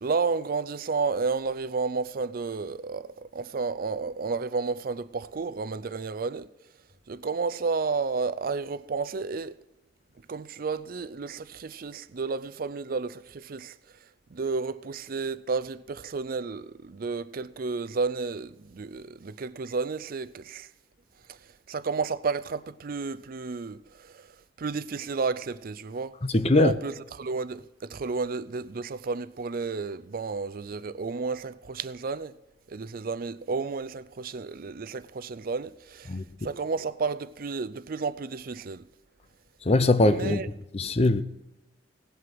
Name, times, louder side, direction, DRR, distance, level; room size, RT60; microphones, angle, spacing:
voice 1, 0.0-6.5 7.1-9.6 10.3-13.7 14.3-20.7 21.3-21.4 21.7-24.3 24.6-26.2 26.5-32.3 32.7-36.1 36.4-38.8 40.0-40.5, right 4 dB, 50° right, 0.5 m, -32 dB
voice 2, 26.3-26.7 36.1-36.2 39.7-40.4 40.7-41.2, left 2 dB, 35° left, 0.6 m, -21 dB
17.5 x 7.9 x 6.1 m
head